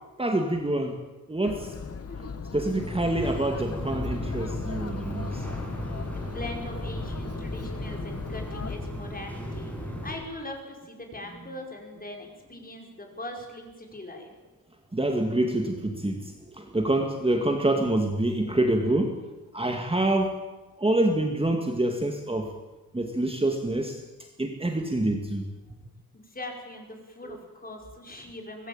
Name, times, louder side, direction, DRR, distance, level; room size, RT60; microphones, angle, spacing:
voice 1, 0.2-1.0 1.3-1.7 2.5-5.5 5.8-5.9 14.9-19.2 19.5-20.4 20.8-22.5 22.9-24.0 24.4-25.5 27.3-27.4, right 1 dB, 15° right, 4 dB, 2.1 m, -26 dB
Chatter, 1.4-8.8, left 5 dB, 40° left, 1.5 m, -38 dB
voice 2, 2.0-2.3 6.0-14.3 26.1-28.7, left 1 dB, 25° left, 2 dB, 5.4 m, -41 dB
sound 1, 2.8-10.2, equal, 5° left, 6.1 m, -35 dB
25.0 x 19.0 x 8.9 m, 1.1 s
wide cardioid pair, 145°, 36 cm